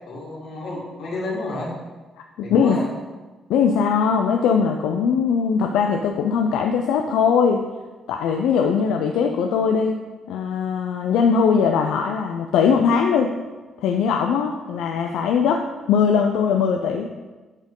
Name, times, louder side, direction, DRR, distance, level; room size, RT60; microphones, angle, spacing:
voice 1, 0.1-1.7 2.4-2.9 14.6-14.7, left 2 dB, 65° left, -4 dB, 2.2 m, -30 dB
voice 2, 2.4-2.8 3.5-7.6 8.1-10.0 10.3-13.3 13.8-15.6 15.9-17.1, left 6 dB, 90° left, 3 dB, 0.4 m, -20 dB
8.8 x 4.4 x 3.7 m, 1.2 s
cardioid pair, 90°, 0 cm